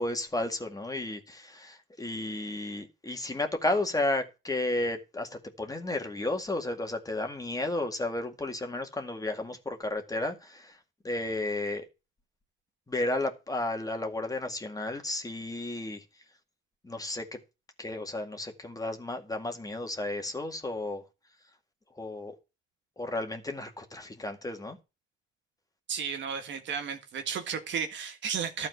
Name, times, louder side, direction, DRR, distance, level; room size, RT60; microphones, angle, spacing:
voice 1, 0.0-10.7 11.0-11.9 12.9-16.0 16.8-17.2 17.8-21.0 22.0-22.3 23.0-24.8, left 2 dB, 20° left, 2.0 m, -33 dB
voice 2, 25.9-28.7, right 7 dB, 70° right, 1.8 m, -33 dB
12.0 x 4.3 x 8.1 m
cardioid pair, 90°, 20 cm